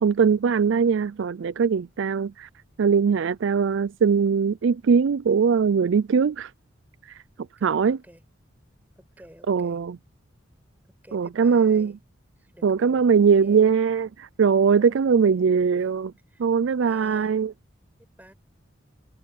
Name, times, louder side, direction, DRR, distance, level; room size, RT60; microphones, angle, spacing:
voice 1, 0.0-2.5 2.8-6.5 7.6-8.0 9.5-10.0 11.1-11.9 12.6-16.1 16.4-17.5, right 6 dB, 70° right, 0.4 m, -21 dB
voice 2, 7.6-8.2 9.0-9.8 10.8-12.0 12.4-13.8 14.7-15.6 16.3-17.4 18.0-18.3, equal, 10° right, 5.7 m, -51 dB
head